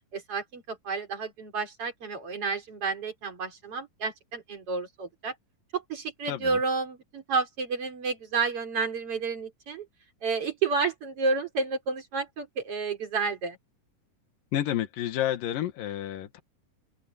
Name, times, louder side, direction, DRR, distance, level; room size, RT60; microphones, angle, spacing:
voice 1, 0.1-5.3 5.7-9.9 10.2-13.6, right 4 dB, 40° right, 4.3 m, -30 dB
voice 2, 6.3-6.6 14.5-16.4, left 11 dB, 80° left, 3.2 m, -30 dB
open air
omnidirectional pair, 3.9 m